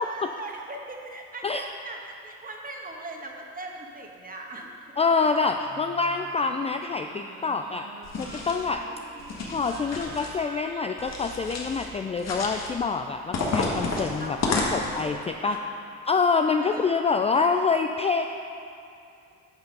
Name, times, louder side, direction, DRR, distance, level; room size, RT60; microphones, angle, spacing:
voice 1, 0.0-5.0 14.2-15.6 16.6-16.9, right 2 dB, 25° right, 0 dB, 1.5 m, -40 dB
voice 2, 5.0-7.9 8.2-8.8 9.5-15.2 15.4-15.6 16.1-18.3, left 4 dB, 20° left, 6 dB, 0.3 m, -26 dB
Singing, 5.6-11.6, right 3 dB, 80° right, 1.6 m, -46 dB
sound 1, 8.0-8.7 9.2-10.3 11.0-11.9 12.2-12.7 13.3-15.1, left 3 dB, 55° left, 1.6 m, -31 dB
9.9 x 5.7 x 5.2 m, 2.6 s
supercardioid pair, 75°, 33 cm